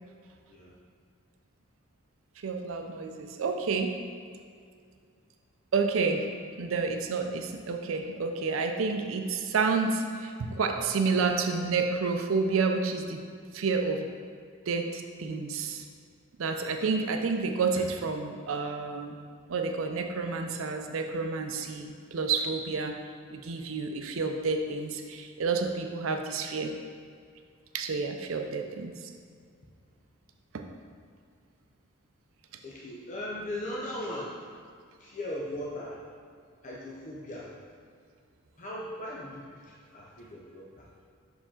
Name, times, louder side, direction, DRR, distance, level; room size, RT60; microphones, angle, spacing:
voice 1, 2.4-3.9 5.7-6.2 6.6-13.2 13.5-14.1 14.7-15.8 16.4-19.1 19.5-23.0 23.3-26.7 27.7-28.9, right 4 dB, 80° right, 5 dB, 0.5 m, -29 dB
voice 2, 32.6-34.5 35.0-36.0 36.6-37.5 38.6-40.9, left 1 dB, 40° left, -4 dB, 0.6 m, -38 dB
5.9 x 4.8 x 3.7 m, 2.2 s
head